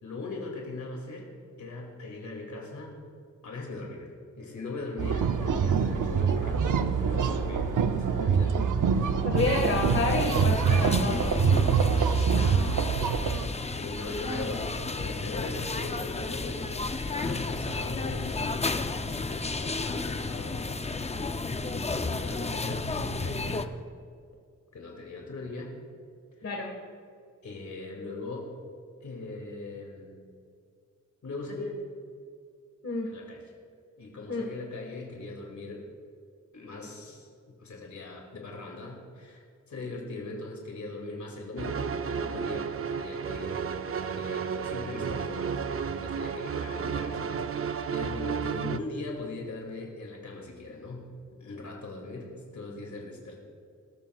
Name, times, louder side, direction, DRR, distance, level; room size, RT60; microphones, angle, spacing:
voice 1, 0.0-1.3 1.6-2.9 3.4-4.1 4.4-8.5 12.3-12.7 12.9-13.2 13.7-14.7 15.0-18.5 18.7-20.7 21.7-23.7 24.7-25.7 26.4-26.5 27.4-28.5 29.0-30.2 31.2-31.8 33.0-33.4 34.0-35.9 36.5-43.7 44.1-53.4, left 2 dB, 70° left, 0 dB, 2.4 m, -40 dB
sound 1, 5.0-13.5, right 6 dB, 85° right, 0.7 m, -25 dB
voice 2, 9.2-11.5 14.2-14.4 26.4-26.7 32.8-33.1 34.3-34.5, left 3 dB, 55° left, 0 dB, 1.6 m, -29 dB
sound 2, 9.4-23.7, left 3 dB, 20° left, 0.5 m, -32 dB
sound 3, 41.6-48.8, right 6 dB, 50° right, 0.5 m, -32 dB
21.0 x 13.0 x 2.4 m, 2.4 s
wide cardioid pair, 120°, 30 cm